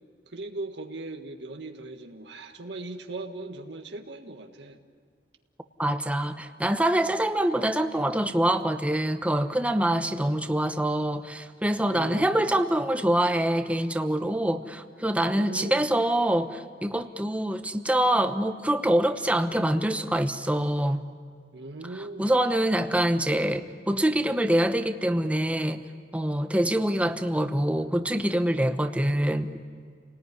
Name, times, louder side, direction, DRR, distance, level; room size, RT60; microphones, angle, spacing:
voice 1, 0.3-4.8 11.9-12.6 15.2-16.0 21.5-22.4, right 2 dB, 80° right, 4 dB, 1.7 m, -39 dB
voice 2, 5.8-21.0 22.2-25.8 26.1-29.5, right 1 dB, 10° right, 8 dB, 1.1 m, -25 dB
30.0 x 19.0 x 9.9 m, 2.1 s
head